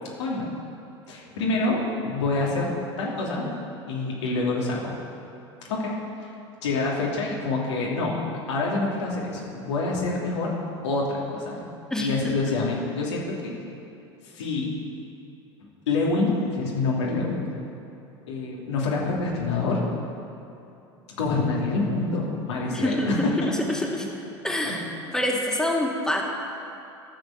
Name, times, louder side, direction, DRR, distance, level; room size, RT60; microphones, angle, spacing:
voice 1, 0.2-0.5 1.1-3.5 3.9-5.0 5.7-6.3 6.6-10.6 10.8-11.7 12.0-13.6 14.2-14.8 15.9-17.5 18.3-19.8 21.2-24.0 24.6-24.7, left 3 dB, 75° left, -3 dB, 2.9 m, -27 dB
voice 2, 11.9-12.4 22.7-24.1 24.4-24.8 25.1-26.2, left 1 dB, 5° left, -1 dB, 2.1 m, -26 dB
13.5 x 7.3 x 7.0 m, 2.8 s
hypercardioid pair, 75°, 15 cm